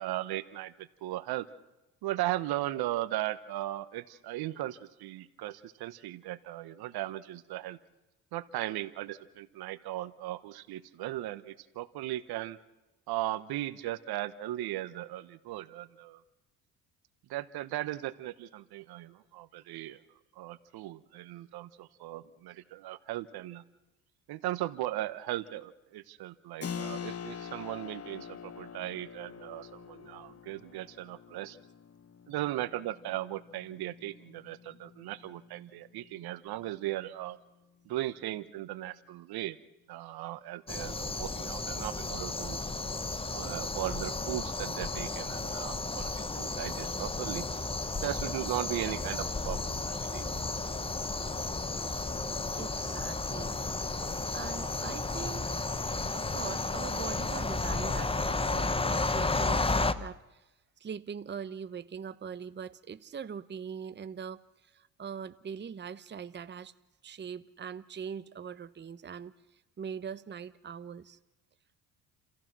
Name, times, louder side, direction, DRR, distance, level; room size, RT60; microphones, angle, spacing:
voice 1, 0.0-1.5 2.0-7.8 8.3-12.6 13.1-16.2 17.3-20.0 20.3-23.6 24.3-31.6 32.3-37.4 37.8-39.6 39.9-42.6 43.3-47.5 48.0-50.2, right 15 dB, 70° right, 14 dB, 1.3 m, -37 dB
Keyboard (musical), 26.6-37.0, left 7 dB, 35° left, 1.3 m, -45 dB
sound 1, 40.7-59.9, left 3 dB, 15° left, 1.0 m, -33 dB
voice 2, 52.6-53.6 54.3-55.6 56.1-60.5 60.8-66.7 67.0-71.2, right 7 dB, 30° right, 12 dB, 0.9 m, -42 dB
30.0 x 15.0 x 6.2 m, 1.0 s
supercardioid pair, 70°, 39 cm